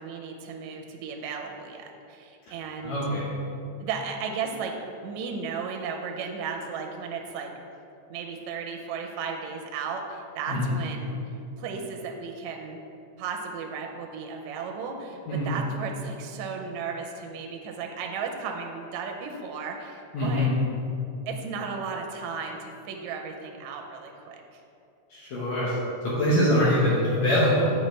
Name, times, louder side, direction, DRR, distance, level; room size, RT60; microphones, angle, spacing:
voice 1, 0.0-3.0 3.8-4.7 5.0-7.5 8.1-11.2 11.6-12.8 13.2-20.5 21.3-24.6, right 5 dB, 80° right, 2 dB, 1.8 m, -35 dB
voice 2, 2.8-3.2 10.5-10.7 15.3-15.6 20.1-20.5 25.1-25.8 26.0-27.7, left 1 dB, 65° left, -8 dB, 2.2 m, -23 dB
7.8 x 5.8 x 3.2 m, 2.7 s
omnidirectional pair, 3.6 m